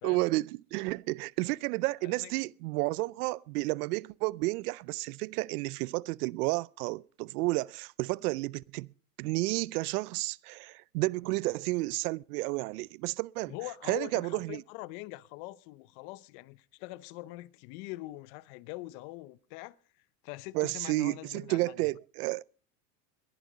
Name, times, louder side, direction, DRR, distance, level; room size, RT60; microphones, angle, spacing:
voice 1, 0.0-8.9 9.2-13.5 13.9-14.6 20.5-22.4, right 22 dB, 70° right, 0.6 m, -31 dB
voice 2, 2.0-2.4 13.5-19.8 20.2-21.9, left 19 dB, 50° left, 0.7 m, -43 dB
21.5 x 11.0 x 3.9 m
supercardioid pair, 140°, 47 cm